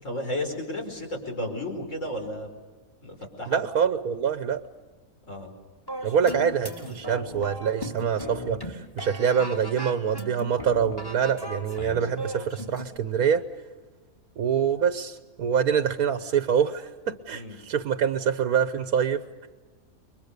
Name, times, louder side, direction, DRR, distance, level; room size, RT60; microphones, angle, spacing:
voice 1, 0.0-2.5 3.0-3.6 5.3-5.5 17.3-17.6, left 1 dB, 60° left, 2 dB, 5.4 m, -33 dB
voice 2, 3.5-4.6 6.0-13.4 14.4-19.5, right 7 dB, 85° right, 10 dB, 1.5 m, -25 dB
sound 1, 5.9-12.8, equal, 15° left, 3.2 m, -37 dB
30.0 x 23.0 x 6.8 m, 1.3 s
omnidirectional pair, 1.5 m